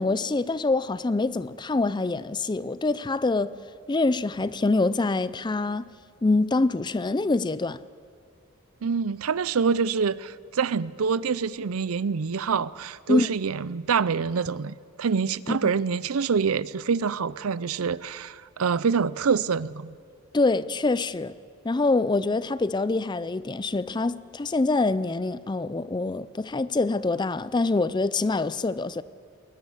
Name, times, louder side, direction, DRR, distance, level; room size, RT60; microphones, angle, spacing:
voice 1, 0.0-3.5 3.9-5.9 6.2-7.8 13.1-13.3 15.5-15.7 20.3-21.4 21.6-29.0, left 3 dB, 20° left, 0.4 m, -25 dB
voice 2, 8.8-19.9, right 5 dB, 90° right, 0.5 m, -26 dB
20.5 x 19.0 x 7.1 m
head